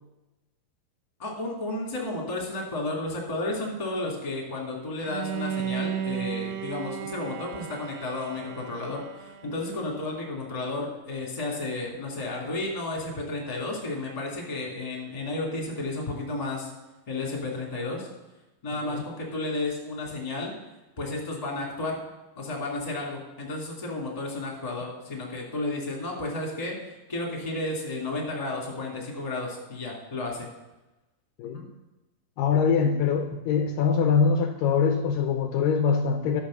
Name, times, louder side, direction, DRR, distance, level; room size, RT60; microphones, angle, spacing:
voice 1, 1.2-16.7 17.1-18.1 18.6-20.5 21.0-22.0 22.4-30.5 31.4-31.7, left 2 dB, 10° left, -2 dB, 2.1 m, -32 dB
Bowed string instrument, 5.0-10.0, right 8 dB, 85° right, 1.7 m, -34 dB
voice 2, 32.4-36.4, left 6 dB, 80° left, 6 dB, 2.2 m, -23 dB
11.5 x 6.5 x 6.4 m, 1.0 s
omnidirectional pair, 4.1 m